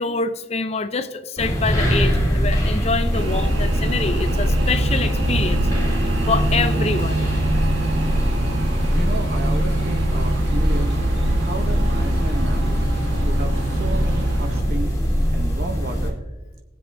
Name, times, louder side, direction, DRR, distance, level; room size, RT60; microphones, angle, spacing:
voice 1, 0.0-5.7 6.3-7.3, left 4 dB, 35° left, 11 dB, 0.5 m, -25 dB
sound 1, 1.4-16.1, equal, 20° left, 1.9 m, -21 dB
sound 2, 3.1-14.6, right 2 dB, 90° right, 1.4 m, -28 dB
voice 2, 8.9-11.0 11.4-12.8 13.3-14.9 15.3-16.2, right 2 dB, 50° right, 4 dB, 0.8 m, -33 dB
20.0 x 7.8 x 2.6 m, 1.2 s
head